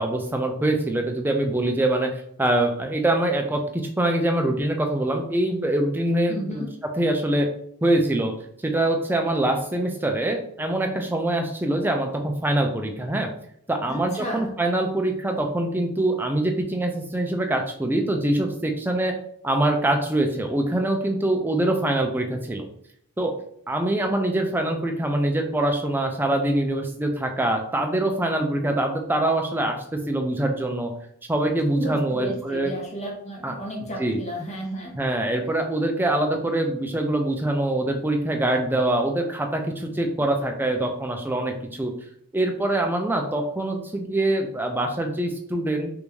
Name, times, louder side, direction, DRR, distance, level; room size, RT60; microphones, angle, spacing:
voice 1, 0.0-6.6 7.0-7.5 7.8-8.3 8.6-13.3 13.7-19.2 19.4-22.6 23.2-23.3 23.7-30.9 31.3-32.7 33.4-33.6 34.0-34.2 34.9-41.9 42.3-45.9, right 1 dB, 10° right, 3 dB, 0.3 m, -24 dB
voice 2, 6.3-6.7 13.9-14.5 31.7-34.9, right 1 dB, 30° left, -1 dB, 0.9 m, -33 dB
3.4 x 2.5 x 3.1 m, 0.69 s
head